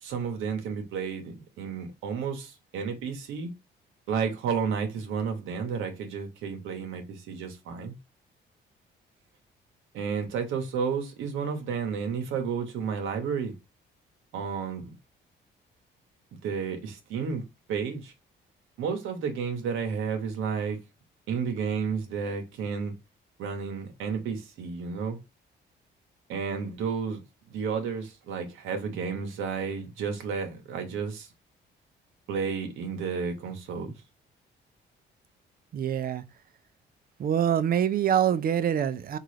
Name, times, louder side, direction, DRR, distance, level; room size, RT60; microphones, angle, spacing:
voice 1, 0.0-3.5 4.1-7.9 9.9-13.5 14.3-14.9 16.4-17.4 17.7-18.1 18.8-20.8 21.3-22.9 23.4-25.2 26.3-27.2 27.5-31.3 32.3-33.9, right 6 dB, 85° right, 0.8 m, -31 dB
voice 2, 35.7-36.2 37.2-39.2, right 9 dB, 50° right, 0.4 m, -25 dB
3.7 x 2.4 x 3.1 m
cardioid pair, 90°, 20 cm